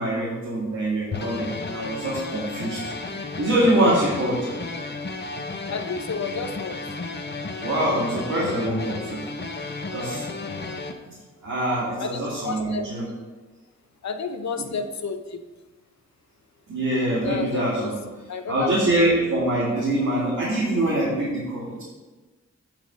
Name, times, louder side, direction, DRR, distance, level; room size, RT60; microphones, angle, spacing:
voice 1, 0.0-2.8 3.4-4.5 7.6-9.2 9.9-10.3 11.1-11.2 11.4-13.1 16.7-18.0 18.5-21.8, right 1 dB, 70° right, -7 dB, 2.3 m, -24 dB
sound 1, 1.1-10.9, left 3 dB, 35° left, 0.9 m, -33 dB
voice 2, 5.7-6.8 10.0-10.5 12.0-12.9 14.0-15.4 17.2-17.9 18.3-18.7 19.7-19.8, left 5 dB, 65° left, 7 dB, 0.8 m, -31 dB
8.8 x 4.1 x 6.3 m, 1.2 s
cardioid pair, 75°, 30 cm